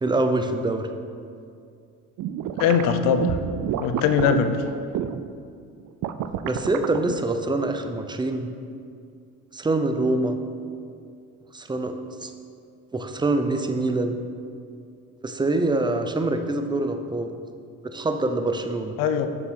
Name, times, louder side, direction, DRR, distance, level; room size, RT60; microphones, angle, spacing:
voice 1, 0.0-0.9 6.4-8.5 9.5-10.4 11.5-11.9 12.2-12.3 12.9-14.2 15.2-17.3 17.8-19.0, right 2 dB, 15° right, 6 dB, 0.6 m, -25 dB
sound 1, 2.2-5.3 5.9-7.2, right 9 dB, 65° right, 0.5 m, -29 dB
voice 2, 2.6-3.4 3.8-4.6 19.0-19.3, left 7 dB, 90° left, 9 dB, 0.6 m, -21 dB
7.1 x 6.3 x 3.7 m, 2.4 s
cardioid pair, 85°, 33 cm